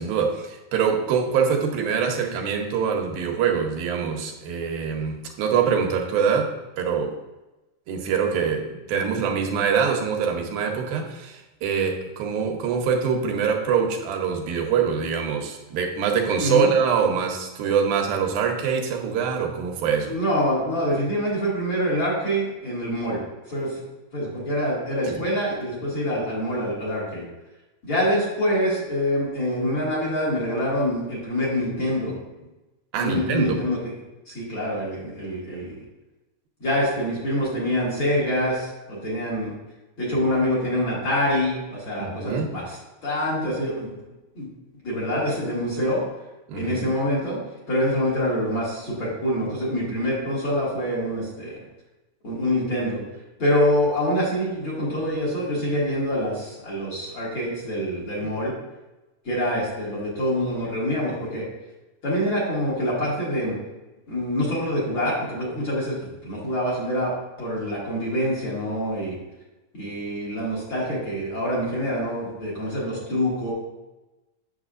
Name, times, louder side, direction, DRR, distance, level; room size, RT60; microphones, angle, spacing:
voice 1, 0.0-7.1 7.9-20.2 25.1-25.2 32.9-33.6 42.0-42.5 46.5-46.9, right 6 dB, 90° right, 2 dB, 2.7 m, -24 dB
voice 2, 16.4-16.7 20.1-23.2 23.5-23.8 24.1-27.2 27.8-32.1 33.0-33.9 34.3-35.8 36.6-39.5 40.0-42.8 43.0-43.9 44.3-44.5 44.8-46.0 46.5-47.4 47.7-51.6 52.2-53.0 53.4-58.5 59.2-61.4 62.0-63.5 64.1-67.1 67.4-69.2 69.7-73.5, equal, 40° left, -6 dB, 2.4 m, -25 dB
8.8 x 7.2 x 2.5 m, 1.0 s
omnidirectional pair, 4.0 m